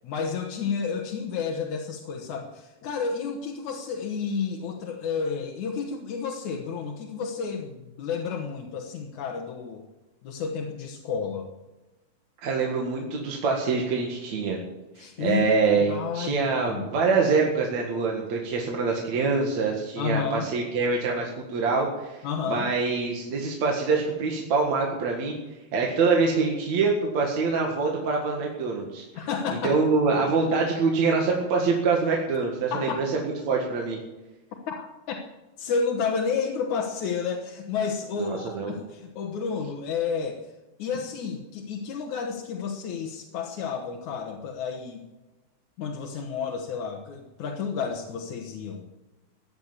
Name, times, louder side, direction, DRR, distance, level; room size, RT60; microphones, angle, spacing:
voice 1, 0.0-9.8 10.2-11.5 15.0-16.9 20.0-20.5 22.2-22.7 29.1-29.8 32.7-33.0 34.7-35.2 35.6-40.5 40.8-45.1 45.8-48.8, left 5 dB, 75° left, 1 dB, 2.8 m, -31 dB
voice 2, 12.4-14.6 15.0-22.2 22.5-25.4 25.7-29.0 29.6-34.0 38.2-38.7, right 4 dB, 70° right, 0 dB, 3.1 m, -25 dB
16.5 x 10.0 x 7.3 m, 1.1 s
omnidirectional pair, 3.4 m